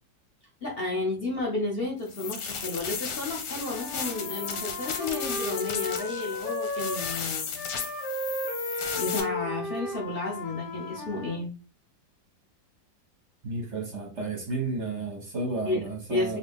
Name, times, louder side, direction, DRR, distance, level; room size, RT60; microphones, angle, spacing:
voice 1, 0.6-7.7 8.7-11.5 15.6-16.4, left 2 dB, 50° left, 0.7 m, -32 dB
sound 1, 2.1-9.2, left 6 dB, 90° left, 1.5 m, -35 dB
Wind instrument woodwind instrument, 3.5-7.2 7.5-11.4, left 2 dB, 65° left, 1.7 m, -35 dB
voice 2, 13.4-16.4, right 3 dB, 55° right, 0.8 m, -32 dB
4.0 x 2.3 x 3.5 m
omnidirectional pair, 2.0 m